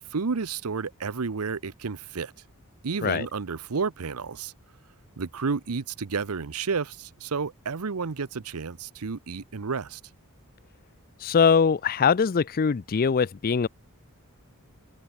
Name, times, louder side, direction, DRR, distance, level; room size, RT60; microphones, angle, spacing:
voice 1, 0.1-2.3 2.8-4.5 5.2-10.0, right 5 dB, 80° right, 0.8 m, -31 dB
voice 2, 11.2-13.7, left 6 dB, 40° left, 0.4 m, -22 dB
head